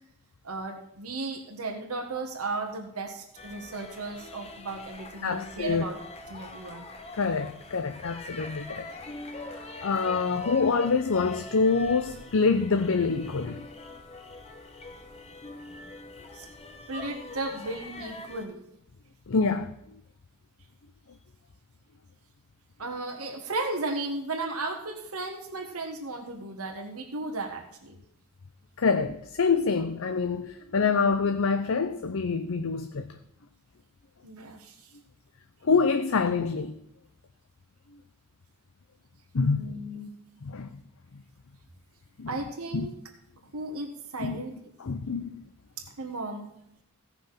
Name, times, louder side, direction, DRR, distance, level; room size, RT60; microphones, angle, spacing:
voice 1, 0.4-6.0 6.3-6.9 16.3-16.5 16.9-18.6 22.8-28.0 34.2-34.7 39.4-40.1 42.3-42.9 43.5-44.5 46.0-46.5, right 2 dB, 75° right, 1.6 m, -35 dB
sound 1, 3.4-18.4, left 2 dB, 30° left, 1.2 m, -43 dB
voice 2, 5.2-5.8 7.2-8.9 9.5-13.7 19.3-19.7 28.8-33.0 35.6-36.7 39.3-39.6 40.4-40.7 42.2-42.3 42.7-42.9 44.2-44.4 44.8-45.4, left 4 dB, 65° left, 0.6 m, -26 dB
16.5 x 5.9 x 5.9 m
head